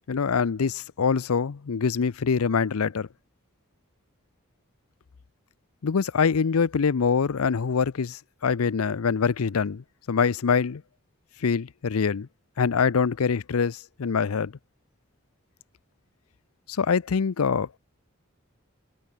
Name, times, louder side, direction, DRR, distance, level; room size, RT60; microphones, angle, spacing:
voice 1, 0.1-3.1 5.8-10.8 11.4-12.3 12.6-14.5 16.7-17.7, left 6 dB, 90° left, 0.6 m, -24 dB
head